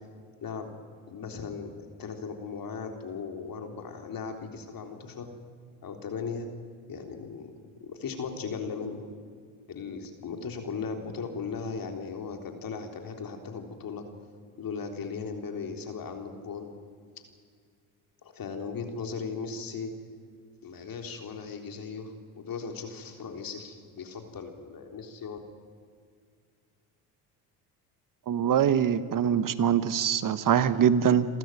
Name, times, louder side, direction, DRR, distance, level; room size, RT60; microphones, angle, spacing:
voice 1, 0.4-5.3 5.8-6.5 6.9-7.5 7.8-9.1 9.7-14.0 14.6-16.7 18.2-19.9 20.6-25.4, left 5 dB, 45° left, 4 dB, 3.7 m, -37 dB
voice 2, 28.3-31.3, right 8 dB, 45° right, 14 dB, 1.3 m, -23 dB
28.5 x 13.5 x 9.2 m, 2.1 s
supercardioid pair, 75°, 46 cm